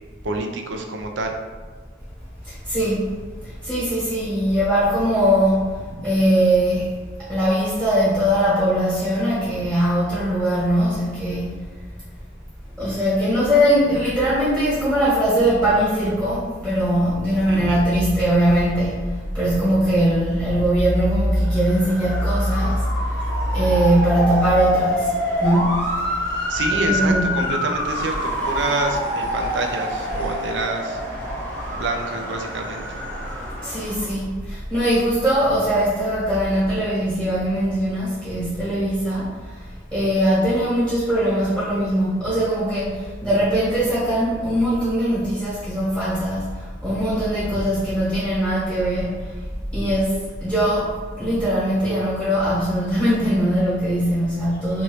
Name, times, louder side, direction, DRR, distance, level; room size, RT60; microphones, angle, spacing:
voice 1, 0.2-1.3 17.5-17.8 26.5-31.0 31.7-33.0, right 3 dB, 80° right, 3 dB, 0.4 m, -27 dB
voice 2, 2.4-3.1 3.4-5.6 6.0-6.9 7.3-11.5 12.8-22.8 23.5-25.1 25.4-26.2 26.7-27.4 33.6-39.6 39.9-49.3 49.7-54.8, equal, 10° right, -11 dB, 1.0 m, -21 dB
Motor vehicle (road) / Siren, 21.4-34.1, equal, 10° left, 0.6 m, -27 dB
3.0 x 2.6 x 3.1 m, 1.5 s
head